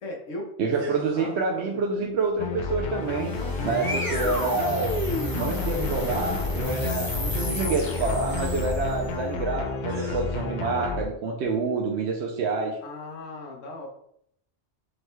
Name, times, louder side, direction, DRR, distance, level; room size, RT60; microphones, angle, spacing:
voice 1, 0.0-2.1 12.8-13.9, left 2 dB, 90° left, 1 dB, 1.3 m, -39 dB
voice 2, 0.6-3.3 3.6-4.9 5.4-12.8, right 4 dB, 70° right, 0 dB, 0.8 m, -28 dB
sound 1, 0.8-1.5 3.9-4.5 6.6-6.7 8.3-9.0 9.9-10.4, right 3 dB, 85° right, 1.3 m, -44 dB
sound 2, 2.4-11.0, left 3 dB, 60° left, 0.5 m, -31 dB
sound 3, 2.9-9.2, left 1 dB, 20° left, 0.6 m, -31 dB
6.3 x 2.2 x 3.0 m, 0.71 s
omnidirectional pair, 1.3 m